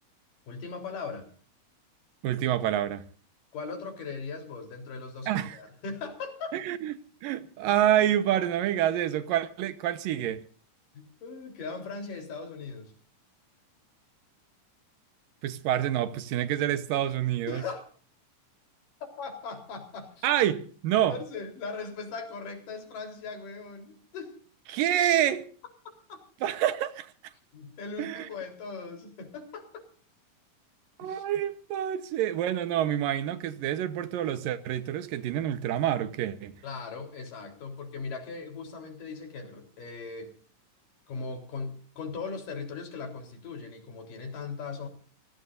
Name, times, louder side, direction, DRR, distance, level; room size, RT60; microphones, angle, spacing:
voice 1, 0.5-1.3 3.5-6.6 10.9-12.9 17.5-17.9 19.0-20.3 21.1-24.4 26.1-26.2 27.5-29.8 31.0-31.2 36.6-40.3 41.1-44.9, left 4 dB, 75° left, 5.5 m, -39 dB
voice 2, 2.2-3.0 5.3-5.6 6.5-10.4 15.4-17.6 20.2-21.2 24.7-25.5 26.4-27.1 28.0-28.3 31.0-36.6, right 11 dB, 90° right, 2.8 m, -27 dB
27.5 x 18.5 x 2.7 m
omnidirectional pair, 3.9 m